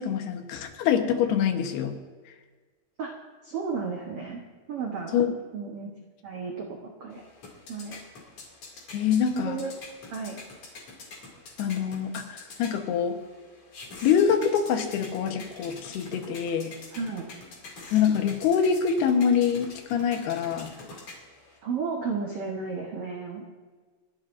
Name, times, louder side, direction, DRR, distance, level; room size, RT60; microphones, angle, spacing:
voice 1, 0.0-1.9 5.1-5.3 8.9-9.6 11.6-13.2 14.0-16.7 17.9-20.7, left 7 dB, 85° left, 5 dB, 3.2 m, -25 dB
voice 2, 3.4-4.4 4.7-5.2 5.5-5.9 6.2-7.2 7.7-8.0 9.3-9.8 10.1-10.4 16.9-17.2 21.6-23.5, right 5 dB, 80° right, 0 dB, 1.3 m, -33 dB
sound 1, 7.1-21.6, left 3 dB, 45° left, 3.4 m, -46 dB
28.0 x 11.5 x 2.6 m, 1.4 s
omnidirectional pair, 4.4 m